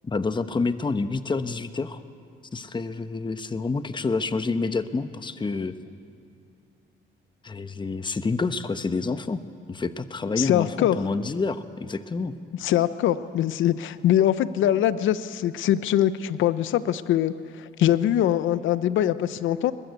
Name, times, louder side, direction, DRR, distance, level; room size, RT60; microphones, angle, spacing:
voice 1, 0.0-2.0 2.5-5.7 7.4-9.4 9.7-12.3, left 4 dB, 25° left, 11 dB, 1.0 m, -28 dB
voice 2, 10.4-11.0 12.6-19.7, left 11 dB, 80° left, 14 dB, 0.8 m, -23 dB
21.5 x 21.5 x 8.2 m, 2.6 s
cardioid pair, 90°, 20 cm